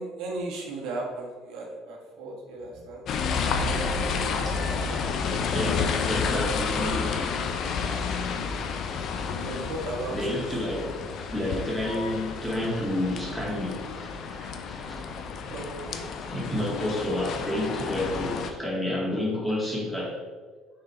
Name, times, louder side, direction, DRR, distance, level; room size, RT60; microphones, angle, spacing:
voice 1, 0.0-3.1 9.4-10.2 15.5-16.0, right 2 dB, 75° right, -1 dB, 1.5 m, -36 dB
sound 1, 3.1-18.5, left 5 dB, 55° left, 0.6 m, -30 dB
voice 2, 4.3-7.3 10.1-15.5 16.3-20.2, left 1 dB, 5° left, -4 dB, 1.9 m, -31 dB
6.6 x 3.9 x 4.4 m, 1.5 s
cardioid pair, 100°, 0 cm